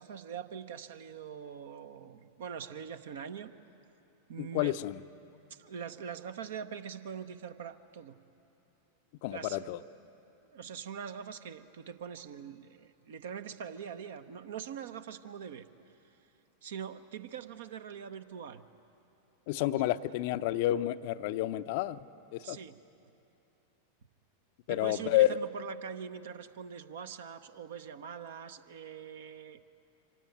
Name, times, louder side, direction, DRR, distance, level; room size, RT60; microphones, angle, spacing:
voice 1, 0.0-3.5 4.3-4.8 5.5-8.2 9.3-9.6 10.5-15.7 16.6-18.6 19.8-19.9 22.4-22.8 24.7-29.6, right 7 dB, 60° right, 11 dB, 0.9 m, -43 dB
voice 2, 4.4-5.0 9.2-9.8 19.5-22.0 22.3-22.6 24.7-25.4, left 14 dB, 50° left, 13 dB, 0.5 m, -30 dB
24.5 x 16.5 x 9.3 m, 2.9 s
figure-of-eight pair, 90°, 0 cm